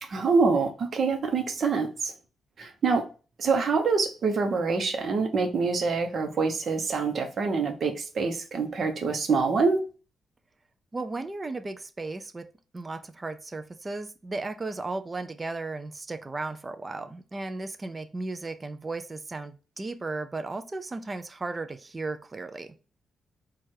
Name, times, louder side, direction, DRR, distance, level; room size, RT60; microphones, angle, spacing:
voice 1, 0.0-2.1 2.6-3.0 3.4-9.8, right 4 dB, 50° right, 0.8 m, -25 dB
voice 2, 10.9-12.5 12.7-22.8, right 3 dB, 25° right, 0.4 m, -35 dB
4.5 x 2.4 x 4.6 m
cardioid pair, 120°, 0 cm